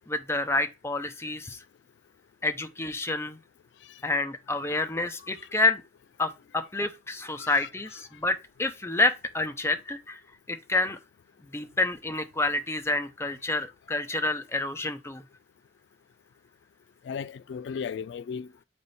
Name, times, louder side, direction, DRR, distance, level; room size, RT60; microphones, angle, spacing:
voice 1, 0.1-1.6 2.4-3.4 4.0-5.8 6.2-10.2 10.5-11.0 11.5-15.2, left 2 dB, 15° left, 0.6 m, -28 dB
voice 2, 7.4-7.7 17.0-18.6, left 6 dB, 90° left, 0.3 m, -36 dB
7.9 x 3.4 x 4.1 m
head